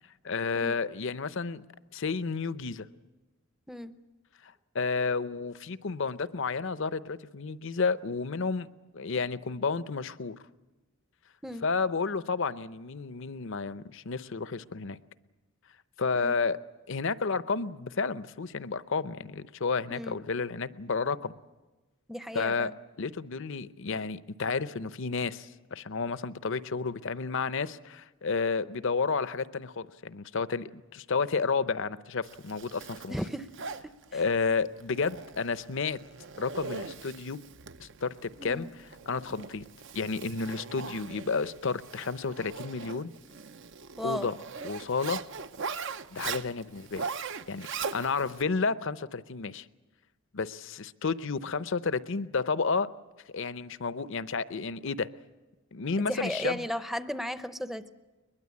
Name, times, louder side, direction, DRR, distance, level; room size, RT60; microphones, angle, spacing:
voice 1, 0.2-1.6 1.9-2.9 4.4-8.7 8.9-10.4 11.6-15.0 16.0-16.6 16.9-21.3 22.3-33.2 34.1-36.0 36.4-37.4 37.8-38.7 39.1-39.6 39.9-43.1 44.0-44.3 44.6-45.2 46.1-47.1 47.5-49.7 50.3-52.9 53.3-55.1 55.7-56.6, left 4 dB, 60° left, 15 dB, 0.7 m, -31 dB
voice 2, 19.9-20.2 22.1-22.7 33.1-33.5 34.1-34.2 38.4-38.7 44.0-44.3 56.1-57.9, equal, ahead, 11 dB, 0.7 m, -35 dB
Zipper (clothing), 32.2-48.4, right 5 dB, 55° right, 0.7 m, -41 dB
22.0 x 21.5 x 8.4 m, 1.2 s
head